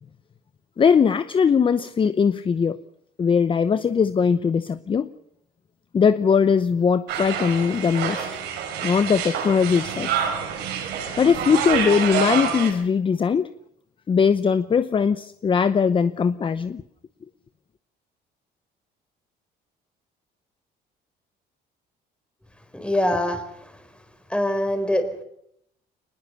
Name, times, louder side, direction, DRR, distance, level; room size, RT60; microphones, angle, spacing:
voice 1, 0.8-2.8 3.2-5.1 5.9-8.3 8.8-10.1 11.2-13.5 14.1-16.8, left 6 dB, 30° left, 0.8 m, -20 dB
sound 1, 7.1-12.7, right 7 dB, 90° right, 6.5 m, -27 dB
voice 2, 22.7-23.8 24.3-25.2, left 1 dB, 5° left, 4.2 m, -24 dB
23.5 x 20.5 x 6.9 m
cardioid pair, 110°, 17 cm